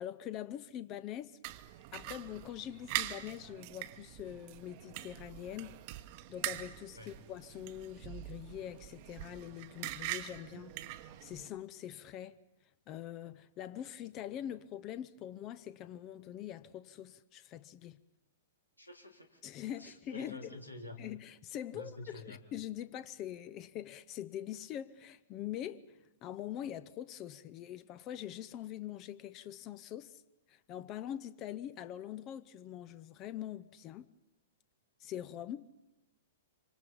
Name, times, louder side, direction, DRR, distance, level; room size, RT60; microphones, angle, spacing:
voice 1, 0.0-1.4 1.9-5.8 6.3-10.8 11.2-12.4 12.9-18.0 19.4-20.4 21.0-21.9 22.2-30.2 30.5-34.1 35.0-35.7, left 11 dB, 30° left, 0.7 m, -43 dB
plato de comida, 1.4-11.5, right 16 dB, 40° right, 1.0 m, -43 dB
voice 2, 18.8-19.4 19.8-21.0 21.7-22.4, left 2 dB, 85° left, 3.5 m, -48 dB
26.5 x 25.0 x 5.5 m
figure-of-eight pair, 105°, 0 cm